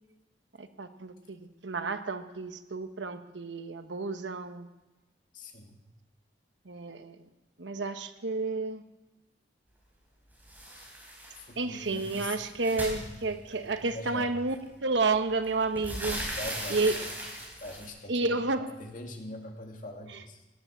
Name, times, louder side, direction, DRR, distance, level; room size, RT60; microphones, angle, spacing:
voice 1, 0.6-4.7 6.6-7.2 7.6-8.8 11.6-14.5 14.8-16.2 16.7-17.0 18.1-18.7, right 3 dB, 85° right, 9 dB, 1.1 m, -31 dB
voice 2, 5.3-5.8 10.8-11.1 11.4-12.4 12.7-13.2 13.6-14.3 16.2-17.1 17.6-18.3 18.8-20.5, left 1 dB, 45° left, 2 dB, 2.2 m, -43 dB
sound 1, 10.5-11.5 11.8-13.7 14.7-14.8 15.1-17.9, equal, 10° right, 4.5 m, -39 dB
17.5 x 9.9 x 7.3 m, 1.1 s
head